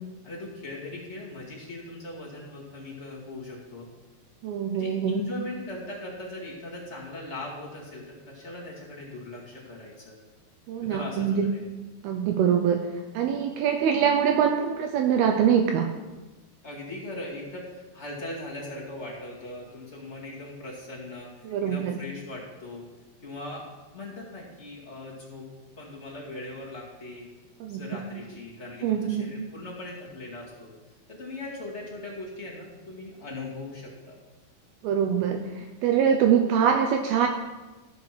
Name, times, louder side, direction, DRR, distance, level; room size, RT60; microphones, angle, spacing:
voice 1, 0.2-3.9 4.7-10.1 10.8-11.6 16.6-22.8 23.2-23.7 23.9-25.5 25.8-27.3 27.7-30.7 31.1-34.1, left 2 dB, 30° left, -4 dB, 1.3 m, -39 dB
voice 2, 4.4-5.2 10.7-11.5 12.0-12.8 13.1-15.9 21.5-21.9 27.6-27.8 28.8-29.3 34.8-37.3, right 8 dB, 80° right, 3 dB, 2.5 m, -24 dB
14.0 x 5.8 x 5.9 m, 1.2 s
omnidirectional pair, 4.7 m